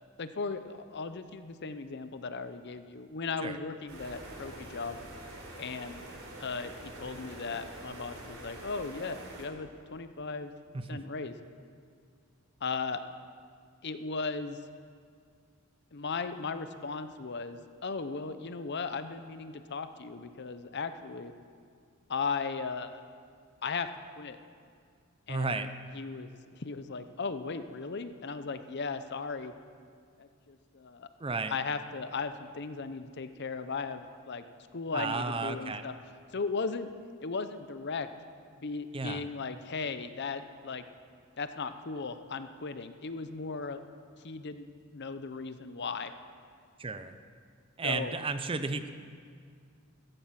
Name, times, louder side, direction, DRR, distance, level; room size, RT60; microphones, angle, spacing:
voice 1, 0.2-5.0 5.6-6.0 6.4-10.5 10.9-11.3 12.6-13.0 13.8-14.6 15.9-21.3 22.1-23.0 23.6-23.9 24.2-24.4 25.3-25.7 25.9-29.5 30.2-31.1 31.5-34.4 34.7-35.9 36.3-36.9 37.2-38.1 38.5-40.8 41.4-43.8 44.2-44.7 44.9-46.1 47.8-48.1, left 4 dB, 50° left, 10 dB, 0.7 m, -37 dB
sound 1, 3.9-9.5, right 1 dB, 70° right, 3.8 m, -46 dB
voice 2, 10.7-11.1 25.3-25.7 31.2-31.5 34.9-35.8 38.9-39.2 46.8-47.2 47.8-48.9, right 3 dB, 25° right, 10 dB, 0.6 m, -33 dB
15.5 x 14.5 x 5.9 m, 2.1 s
head